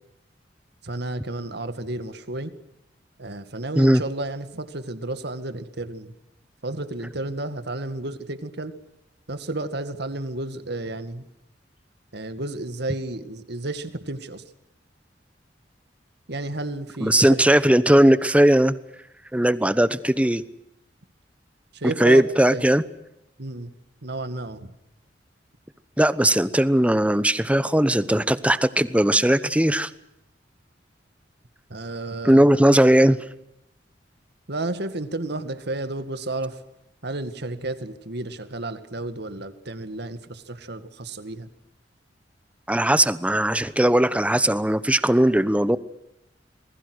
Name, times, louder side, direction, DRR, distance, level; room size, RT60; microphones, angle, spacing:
voice 1, 0.8-2.5 3.2-6.1 6.6-8.7 9.3-11.3 12.1-14.4 16.3-17.4 21.7-22.6 23.4-23.7 24.0-24.7 31.7-32.6 34.5-36.6 37.0-41.5, right 2 dB, 65° right, 10 dB, 2.2 m, -32 dB
voice 2, 17.0-18.8 19.3-20.4 21.8-22.8 26.0-29.9 32.2-33.2 42.7-45.8, right 1 dB, 5° right, 15 dB, 1.0 m, -18 dB
27.5 x 21.0 x 6.4 m, 0.85 s
head